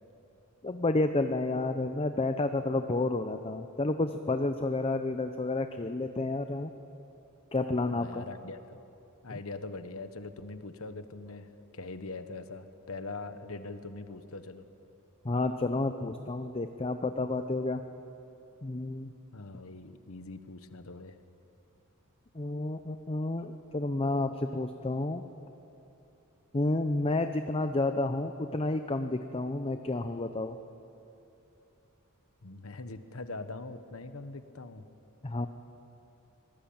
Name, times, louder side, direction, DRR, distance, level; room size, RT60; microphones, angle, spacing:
voice 1, 0.6-6.7 7.5-8.2 9.3-9.4 15.2-17.8 18.6-19.1 22.3-25.2 26.5-30.6 35.2-35.5, left 2 dB, 25° left, 8 dB, 0.7 m, -30 dB
voice 2, 7.9-8.8 9.2-11.5 11.7-14.6 19.3-21.2 32.4-34.8, left 3 dB, 70° left, 10 dB, 1.3 m, -42 dB
24.5 x 19.0 x 8.8 m, 2.9 s
head